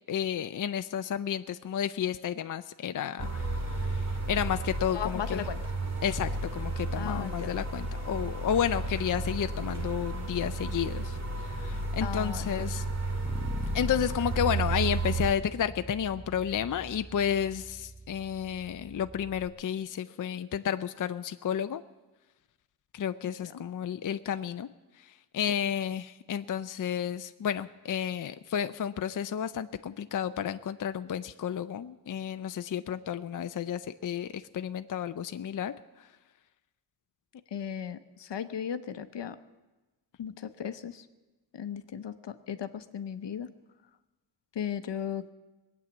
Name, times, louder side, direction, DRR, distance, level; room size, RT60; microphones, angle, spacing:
voice 1, 0.1-5.4 6.0-12.8 13.7-21.8 22.9-24.7 25.0-36.1, left 9 dB, 50° left, 10 dB, 0.5 m, -32 dB
sound 1, 3.2-15.3, right 2 dB, 40° right, 1.9 m, -33 dB
voice 2, 4.9-5.6 7.0-7.5 12.0-12.7 23.2-23.5 37.5-39.4 40.2-41.1 41.5-43.5 44.5-45.3, left 8 dB, 75° left, 10 dB, 0.8 m, -36 dB
Bass guitar, 13.2-19.5, right 1 dB, ahead, 1.1 m, -44 dB
20.5 x 8.9 x 7.1 m, 1.2 s
wide cardioid pair, 90°, 42 cm